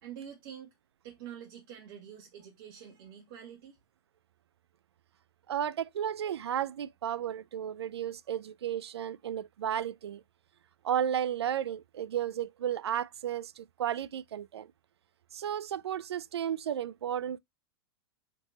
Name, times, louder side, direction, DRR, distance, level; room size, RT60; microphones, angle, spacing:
voice 1, 0.0-0.7 1.0-3.8, right 9 dB, 60° right, 1.7 m, -46 dB
voice 2, 5.5-10.2 10.8-14.7 15.3-17.4, right 9 dB, 90° right, 0.4 m, -33 dB
4.4 x 3.0 x 3.9 m
hypercardioid pair, 115°, 13 cm